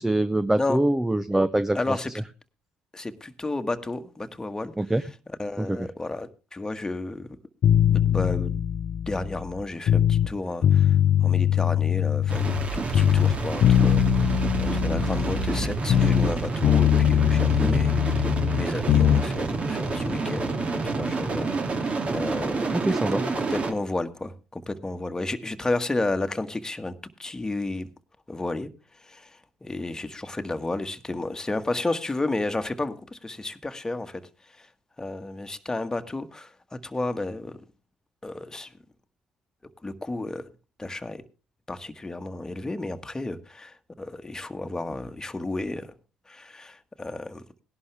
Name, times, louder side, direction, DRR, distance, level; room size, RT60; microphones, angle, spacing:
voice 1, 0.0-2.0 4.8-5.0 5.6-5.9 17.6-17.8 22.7-23.3, right 1 dB, 10° right, 0.7 m, -24 dB
voice 2, 1.7-2.1 2.9-4.7 5.4-7.3 7.9-8.6 9.0-10.9 11.2-18.3 18.6-22.8 23.4-26.9 27.2-27.9 28.3-28.7 29.1-29.3 29.6-34.2 35.0-37.6 38.2-38.7 39.8-40.4 40.8-41.2 41.7-45.9 46.3-47.4, left 2 dB, 15° left, 1.6 m, -32 dB
sound 1, 7.6-10.3 10.6-12.7 12.9-16.4 16.6-19.3, left 9 dB, 55° left, 0.7 m, -21 dB
sound 2, 12.3-23.7, right 3 dB, 40° right, 2.4 m, -29 dB
17.5 x 11.5 x 3.4 m
hypercardioid pair, 55°, 3 cm